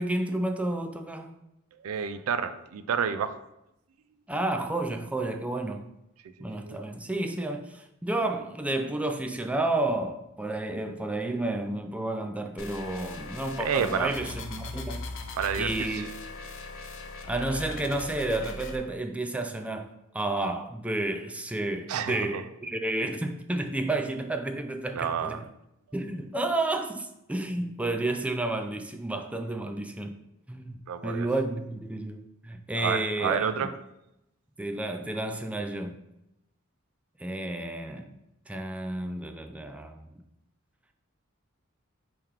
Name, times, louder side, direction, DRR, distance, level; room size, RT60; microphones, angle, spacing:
voice 1, 0.0-1.4 4.3-5.9 6.4-15.1 15.6-16.1 17.3-25.4 25.9-30.1 30.5-33.7 34.6-36.0 37.2-38.1 38.5-40.2, right 2 dB, 5° right, 0.3 m, -31 dB
voice 2, 1.8-3.4 6.6-6.8 13.6-14.1 15.4-16.1 21.9-22.4 24.9-25.4 30.9-31.3 32.8-33.7, right 7 dB, 85° right, 0.4 m, -29 dB
sound 1, 12.6-18.8, left 3 dB, 65° left, 0.5 m, -39 dB
3.7 x 3.0 x 4.8 m
head